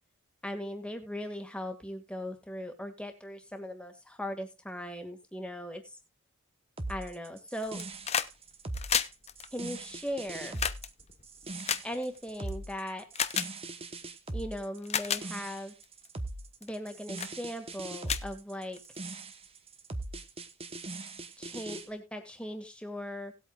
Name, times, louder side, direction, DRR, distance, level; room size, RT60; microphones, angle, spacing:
voice 1, 0.4-5.8 6.9-7.8 9.5-10.6 11.8-13.1 14.3-15.7 16.6-18.8 21.4-23.3, equal, 5° left, 5 dB, 1.9 m, -38 dB
Trap loop drop, 6.8-21.9, right 2 dB, 25° right, 1.1 m, -41 dB
sound 1, 7.6-8.3 8.6-12.5 13.1-13.5 14.3-14.4 14.8-15.2 15.8-16.1 16.6-16.9 17.2-17.3 17.7-17.8 18.0-19.0 20.1-20.2, left 8 dB, 30° left, 0.6 m, -32 dB
18.5 x 8.4 x 2.4 m, 0.26 s
head